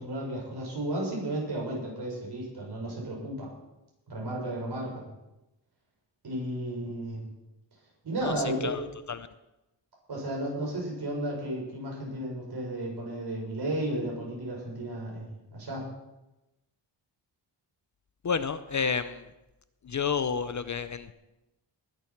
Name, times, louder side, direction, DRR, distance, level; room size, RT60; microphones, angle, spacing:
voice 1, 0.0-3.5 4.1-5.0 6.2-7.3 8.0-8.8 10.1-15.9, right 1 dB, 60° right, -3 dB, 6.3 m, -33 dB
voice 2, 8.2-8.8 9.1-9.3 18.2-19.3 19.8-21.1, left 6 dB, 40° left, 12 dB, 0.6 m, -30 dB
20.5 x 7.6 x 6.0 m, 0.97 s
wide cardioid pair, 145°, 44 cm